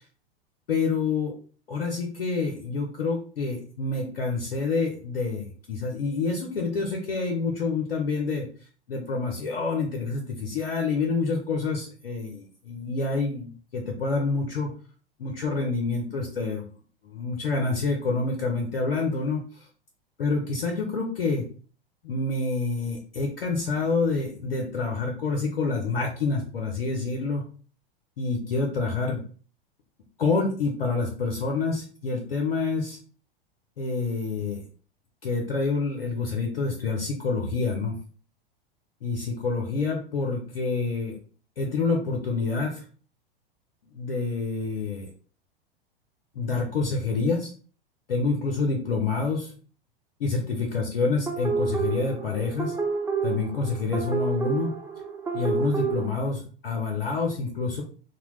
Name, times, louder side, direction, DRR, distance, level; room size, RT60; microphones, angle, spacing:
voice 1, 0.7-1.4 1.7-8.5 8.9-14.7 15.2-16.6 17.0-19.7 20.2-21.4 22.0-27.5 28.2-29.2 30.2-33.0 33.8-34.6 35.2-38.0 39.0-41.2 41.6-42.9 43.9-45.1 46.3-47.5 48.1-49.5 50.2-52.8 53.2-54.7 55.3-57.8, left 4 dB, 85° left, 1 dB, 0.6 m, -27 dB
sound 1, 51.3-56.1, right 5 dB, 10° right, 0.3 m, -29 dB
2.8 x 2.1 x 3.1 m, 0.42 s
hypercardioid pair, 95°, 29 cm